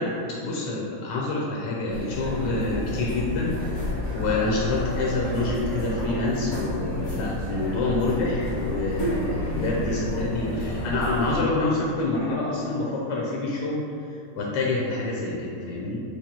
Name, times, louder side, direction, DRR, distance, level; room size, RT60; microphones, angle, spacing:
voice 1, 0.0-13.8 14.1-16.0, left 2 dB, 85° left, -4 dB, 1.3 m, -27 dB
sound 1, 1.9-11.4, left 1 dB, 60° left, 1.8 m, -30 dB
4.9 x 2.4 x 4.3 m, 2.6 s
omnidirectional pair, 1.8 m